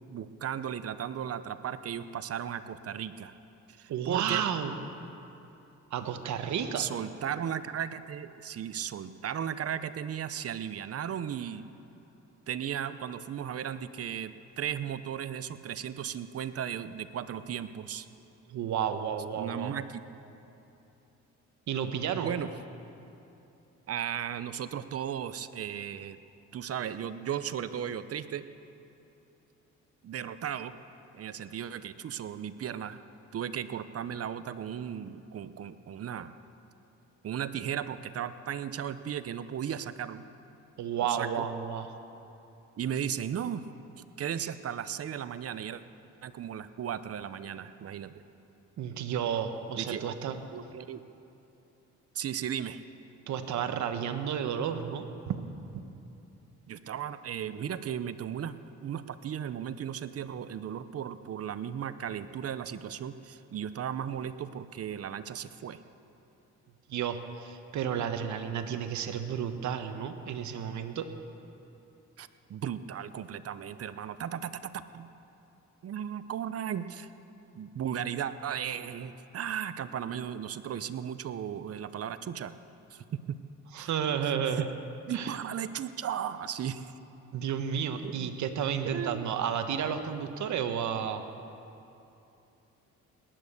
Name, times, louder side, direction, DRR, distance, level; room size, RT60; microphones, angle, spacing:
voice 1, 0.1-3.3 3.8-4.4 6.8-11.7 12.5-18.1 19.4-20.0 22.2-22.5 23.9-26.2 26.5-28.5 30.0-30.7 31.1-33.0 33.3-36.3 37.2-40.2 41.0-41.5 42.8-43.6 44.2-45.8 46.2-48.2 49.8-50.0 50.5-51.0 52.1-52.8 56.7-58.5 58.8-65.8 72.2-75.1 75.8-77.1 77.5-82.5 82.9-83.4 83.8-83.9 84.2-84.7 85.1-86.9 88.0-88.3 88.9-89.3, right 9 dB, 50° right, 13 dB, 0.8 m, -36 dB
voice 2, 3.9-4.7 5.9-6.8 18.5-19.7 21.7-22.3 40.8-41.9 48.8-50.4 53.3-55.4 55.7-55.8 66.9-71.1 83.7-84.7 85.1-85.4 87.3-91.2, right 8 dB, 70° right, 7 dB, 1.2 m, -32 dB
18.5 x 10.5 x 6.7 m, 2.8 s
cardioid pair, 90°, 30 cm